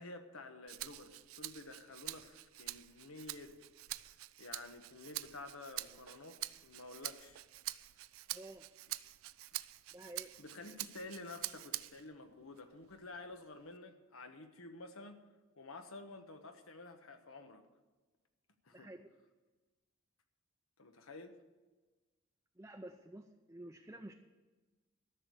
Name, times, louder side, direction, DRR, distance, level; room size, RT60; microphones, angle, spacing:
voice 1, 0.0-3.6 4.4-7.4 9.5-9.6 10.4-15.2 15.6-17.6 18.6-18.9 20.8-21.4, left 2 dB, 90° left, 1.3 m, -51 dB
Rattle (instrument), 0.7-12.1 12.6-13.8, right 17 dB, 85° right, 0.4 m, -46 dB
voice 2, 8.3-8.7 9.9-10.3 18.7-19.1 22.6-24.1, right 1 dB, 15° right, 0.6 m, -50 dB
13.5 x 6.6 x 9.9 m
head